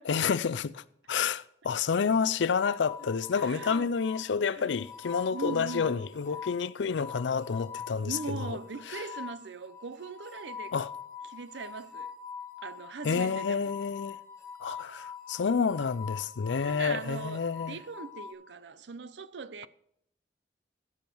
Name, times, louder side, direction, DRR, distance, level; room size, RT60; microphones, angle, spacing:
voice 1, 0.1-8.6 8.9-9.0 10.7-10.9 13.0-14.2 14.6-17.8, left 6 dB, 80° left, 0.5 m, -29 dB
sound 1, 2.6-18.3, left 7 dB, 20° left, 2.2 m, -44 dB
voice 2, 3.3-3.9 4.5-4.8 5.3-5.9 8.0-10.7 11.2-12.1 12.6-13.7 16.6-19.7, right 4 dB, 75° right, 0.6 m, -40 dB
15.0 x 7.1 x 4.6 m
head